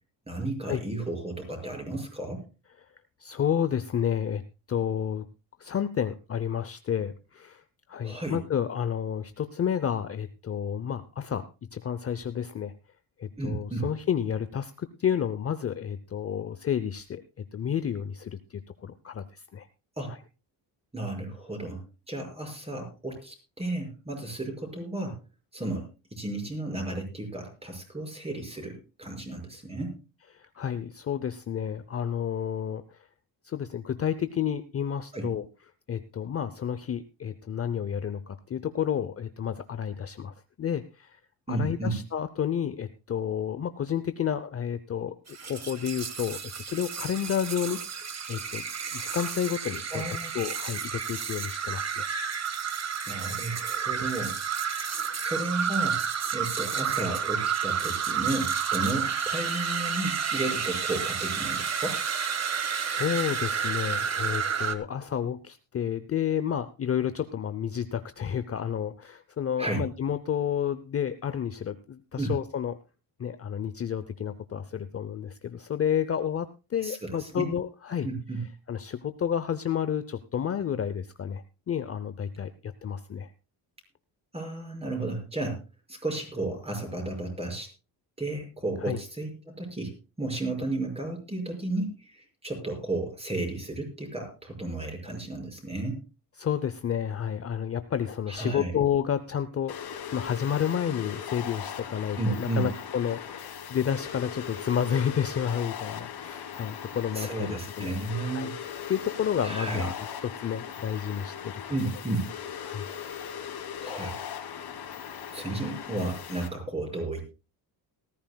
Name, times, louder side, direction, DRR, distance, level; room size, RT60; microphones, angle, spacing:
voice 1, 0.3-2.4 8.0-8.4 13.4-13.9 20.0-20.1 20.9-21.8 22.1-25.2 25.5-30.0 35.1-35.3 41.5-42.0 49.9-50.3 53.1-54.4 55.2-56.0 56.3-62.0 69.6-69.8 72.2-72.3 76.8-77.5 78.0-78.4 84.3-85.6 85.9-87.7 88.2-96.0 98.3-98.7 102.2-102.7 107.1-108.5 109.4-109.9 111.7-112.3 113.8-114.2 115.3-117.2, right 2 dB, 15° right, 3 dB, 5.8 m, -33 dB
voice 2, 3.2-4.4 4.7-5.3 5.6-7.6 7.9-11.4 11.7-12.7 13.2-17.2 17.5-19.7 20.1-20.2 30.3-33.0 33.4-35.4 35.9-41.2 41.5-45.1 45.4-48.6 48.9-52.1 62.8-72.8 73.2-78.1 78.7-83.3 88.8-89.0 96.4-108.0 108.3-108.5 108.9-111.5 112.6-112.9, left 8 dB, 35° left, 12 dB, 0.7 m, -30 dB
sound 1, 45.3-64.7, right 7 dB, 40° right, 1.6 m, -31 dB
sound 2, 99.7-116.5, left 8 dB, 65° left, 2.8 m, -39 dB
19.0 x 14.0 x 2.3 m, 0.30 s
cardioid pair, 120°, 42 cm